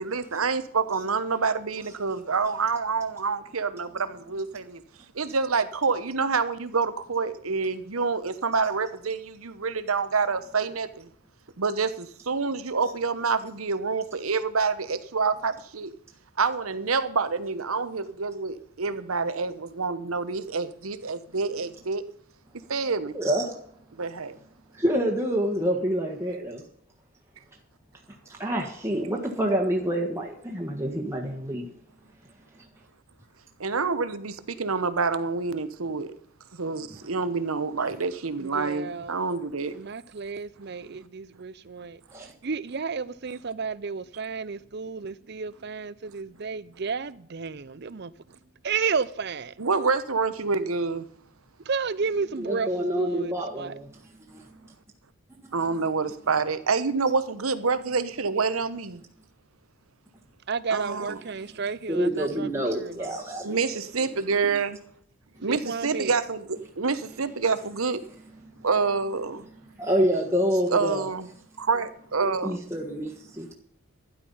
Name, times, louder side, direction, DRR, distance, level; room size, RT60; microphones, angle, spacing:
voice 1, 0.0-4.8 5.1-11.1 11.6-15.9 16.4-22.0 22.7-23.2 23.9-24.4 33.6-36.1 36.5-39.7 49.6-51.1 55.5-59.0 60.7-61.2 63.4-64.8 65.4-68.0 68.6-69.5 70.7-71.3 71.6-72.6, right 4 dB, 90° right, 1.1 m, -27 dB
voice 2, 23.1-23.5 24.8-26.6 28.3-31.7 42.1-42.3 52.4-53.9 54.3-54.4 61.9-63.8 69.8-71.0 72.2-73.5, equal, 15° right, 1.6 m, -27 dB
voice 3, 38.4-39.2 39.7-42.0 42.4-48.1 48.6-49.5 51.7-53.7 60.5-63.2 65.4-66.2, right 5 dB, 50° right, 0.6 m, -32 dB
12.5 x 10.5 x 5.6 m
head